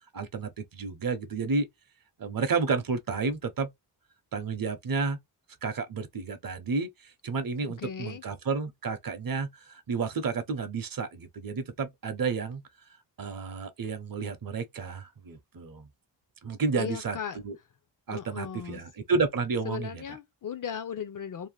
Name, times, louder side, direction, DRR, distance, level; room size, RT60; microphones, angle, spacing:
voice 1, 0.1-1.7 2.2-3.7 4.3-5.2 5.6-12.6 13.2-15.9 16.4-17.2 17.4-17.6 18.1-20.0, right 4 dB, 50° right, 0.7 m, -31 dB
voice 2, 7.8-8.2 16.8-17.4 18.1-18.8 19.6-21.5, left 8 dB, 50° left, 0.4 m, -36 dB
2.7 x 2.1 x 3.1 m
wide cardioid pair, 105°, 44 cm